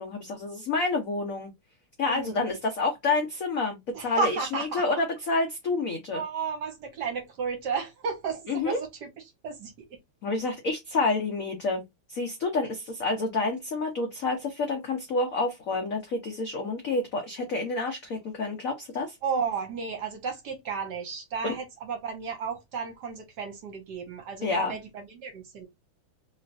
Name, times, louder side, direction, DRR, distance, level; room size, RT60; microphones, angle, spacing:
voice 1, 0.0-1.5 2.0-6.2 8.5-8.8 10.2-11.8 12.1-19.1 21.4-21.5 24.4-24.7, left 3 dB, 80° left, 0.7 m, -28 dB
voice 2, 2.0-2.5 3.9-5.0 6.1-10.0 19.2-25.7, right 5 dB, 60° right, 1.2 m, -33 dB
3.2 x 3.1 x 2.4 m
omnidirectional pair, 2.4 m